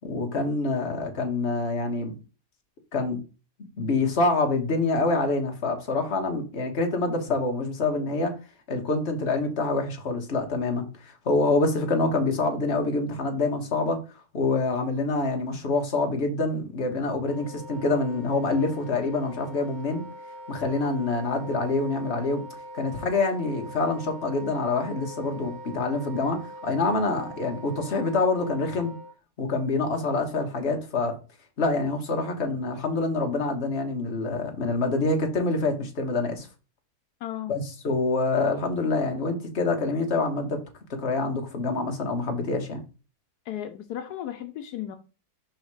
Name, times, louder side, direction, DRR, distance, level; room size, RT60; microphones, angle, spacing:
voice 1, 0.0-2.1 2.9-3.2 3.8-8.3 8.7-14.0 14.3-20.0 20.5-22.4 22.7-28.9 29.4-31.2 31.6-36.5 37.5-40.6 41.0-42.8, left 3 dB, 45° left, 1.5 m, -26 dB
Wind instrument woodwind instrument, 17.2-29.1, equal, 40° right, 2.3 m, -42 dB
voice 2, 37.2-37.6 43.5-45.0, left 11 dB, 80° left, 1.2 m, -35 dB
5.6 x 4.2 x 4.7 m
omnidirectional pair, 1.7 m